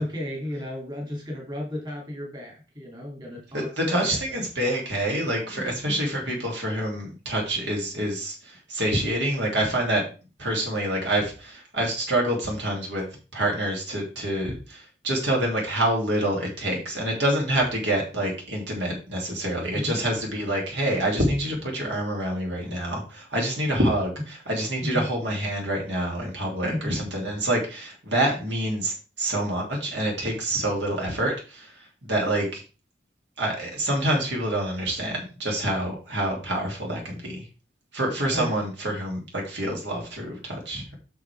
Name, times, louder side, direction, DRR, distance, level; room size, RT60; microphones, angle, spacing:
voice 1, 0.0-4.4 5.5-6.0 19.7-20.0 24.8-25.1 26.7-26.9 30.6-30.7 38.3-38.6, left 1 dB, 25° right, -1 dB, 2.6 m, -34 dB
voice 2, 3.5-10.1 10.4-31.7 32.0-32.6 33.4-37.4 37.9-40.9, right 1 dB, 65° right, -1 dB, 2.7 m, -27 dB
8.2 x 6.5 x 3.4 m, 0.33 s
head